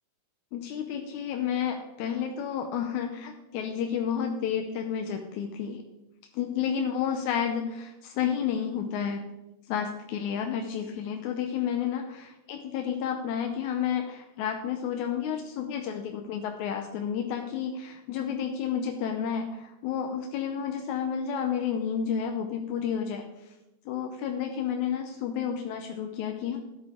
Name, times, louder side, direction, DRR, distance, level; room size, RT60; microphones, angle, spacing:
voice 1, 0.5-5.8 6.3-9.3 9.7-23.2 23.9-26.6, left 8 dB, 75° left, 4 dB, 1.9 m, -31 dB
13.0 x 9.8 x 3.7 m, 0.95 s
omnidirectional pair, 4.1 m